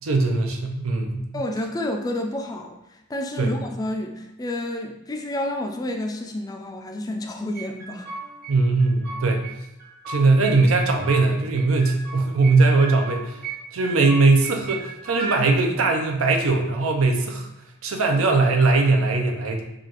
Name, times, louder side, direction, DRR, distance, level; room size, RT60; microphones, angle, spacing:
voice 1, 0.0-1.2 3.4-3.5 8.5-9.5 10.1-13.4 13.7-17.5 17.8-19.6, right 3 dB, 80° right, 3 dB, 0.6 m, -20 dB
voice 2, 1.3-8.1, left 1 dB, 20° left, 3 dB, 0.3 m, -30 dB
sound 1, 7.5-8.5 8.8-9.5 9.8-11.2 11.5-12.5 12.8-13.5 13.8-15.3, right 5 dB, 50° right, 1.4 m, -35 dB
4.8 x 2.4 x 2.9 m, 0.93 s
head